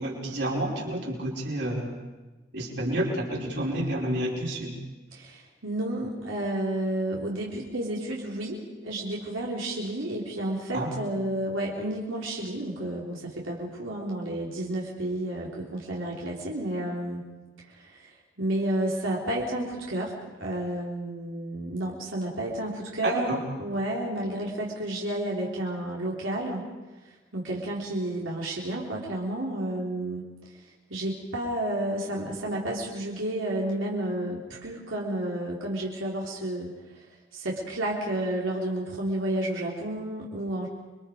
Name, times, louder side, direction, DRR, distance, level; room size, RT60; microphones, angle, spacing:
voice 1, 0.0-1.9 2.5-4.7 10.7-10.9 23.0-23.4, right 1 dB, 60° right, -2 dB, 4.9 m, -29 dB
voice 2, 5.1-17.2 17.6-20.1 20.4-26.6 27.1-30.3 30.5-30.6 30.9-37.1 37.3-40.7, right 1 dB, 90° right, -4 dB, 3.6 m, -31 dB
28.5 x 23.5 x 5.1 m, 1.2 s
head